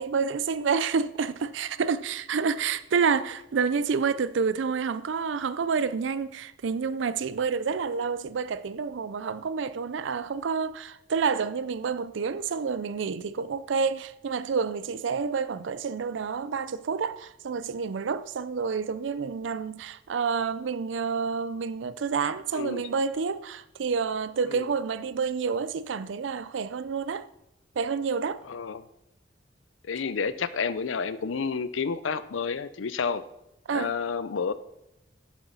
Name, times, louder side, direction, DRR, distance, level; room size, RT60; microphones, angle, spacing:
voice 1, 0.0-27.3 27.8-28.4 33.7-33.9, right 5 dB, 75° right, 0.4 m, -29 dB
voice 2, 28.4-28.8 29.8-33.2 33.7-34.5, left 5 dB, 90° left, 0.5 m, -30 dB
7.5 x 7.1 x 5.5 m
head